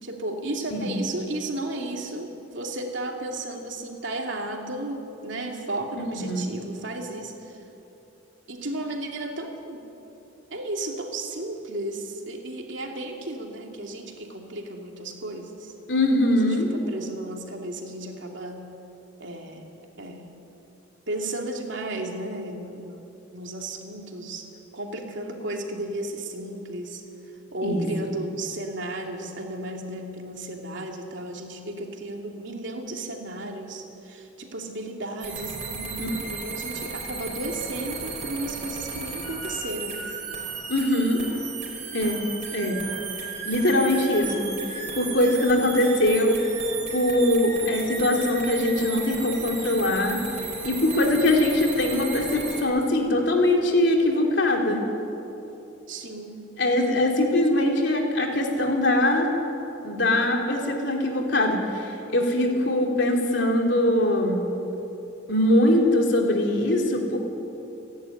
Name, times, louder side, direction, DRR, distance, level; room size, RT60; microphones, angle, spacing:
voice 1, 0.0-7.6 8.5-9.9 10.5-15.7 16.3-18.6 19.2-19.7 20.0-20.4 21.1-23.0 23.3-27.0 27.5-40.0 55.9-56.4, right 2 dB, 70° right, 1 dB, 2.8 m, -34 dB
voice 2, 6.1-6.4 15.9-16.7 27.6-27.8 36.0-36.1 40.7-41.2 41.9-42.2 42.5-42.8 43.4-46.4 46.9-50.2 50.6-54.8 56.6-59.3 59.8-64.4 65.3-67.2, left 1 dB, 65° left, 1 dB, 3.3 m, -22 dB
sound 1, 35.2-52.6, right 4 dB, 35° right, 4.7 m, -35 dB
29.0 x 11.0 x 9.9 m, 3.0 s
head